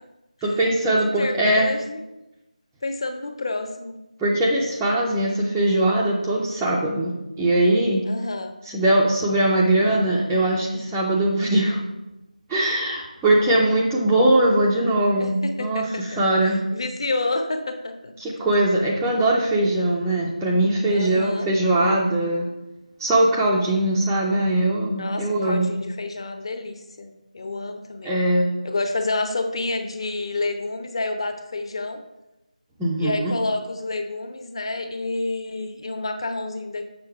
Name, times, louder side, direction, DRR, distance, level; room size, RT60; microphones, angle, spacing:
voice 1, 0.4-1.7 4.2-8.0 8.7-11.8 12.5-16.6 18.2-22.5 23.0-25.7 28.0-28.6 32.8-33.3, right 1 dB, 5° right, -7 dB, 0.4 m, -21 dB
voice 2, 1.2-2.0 2.8-4.0 8.0-8.5 15.2-18.1 20.8-21.5 24.9-27.1 27.3-28.2 28.6-32.0 33.0-36.9, left 2 dB, 40° left, 6 dB, 0.9 m, -29 dB
6.8 x 6.5 x 4.5 m, 0.96 s
figure-of-eight pair, 170°, 4 cm